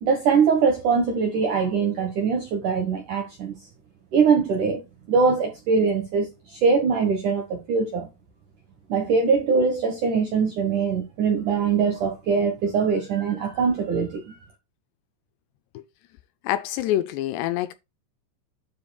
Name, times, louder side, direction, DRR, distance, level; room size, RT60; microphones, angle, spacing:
voice 1, 0.0-3.5 4.1-4.8 5.1-8.1 8.9-14.3, right 5 dB, 75° right, 1.8 m, -22 dB
voice 2, 16.4-17.7, left 13 dB, 90° left, 2.4 m, -26 dB
9.5 x 7.6 x 2.3 m
omnidirectional pair, 5.7 m